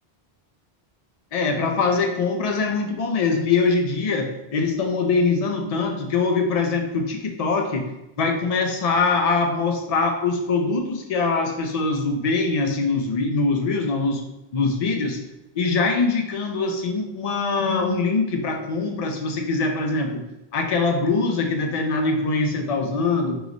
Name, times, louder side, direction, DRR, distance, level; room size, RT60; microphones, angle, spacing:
voice 1, 1.3-7.9 8.2-14.2 14.5-15.2 15.6-20.2 20.5-23.4, left 4 dB, 50° left, 4 dB, 0.5 m, -23 dB
4.7 x 3.0 x 2.6 m, 0.93 s
omnidirectional pair, 1.0 m